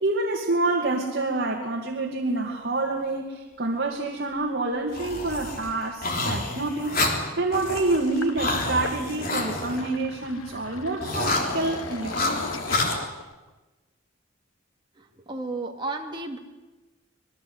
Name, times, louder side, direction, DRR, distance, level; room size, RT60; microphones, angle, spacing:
voice 1, 0.0-7.0 7.4-12.5, right 2 dB, 50° right, 0 dB, 2.5 m, -27 dB
sound 1, 4.9-9.9 11.0-13.0, left 2 dB, 45° left, 3.7 m, -28 dB
Sink (filling or washing), 7.9-13.5, left 3 dB, 80° left, 1.4 m, -40 dB
voice 2, 15.0-16.4, right 2 dB, 20° right, 1 dB, 2.5 m, -33 dB
26.0 x 21.0 x 7.9 m, 1.2 s
head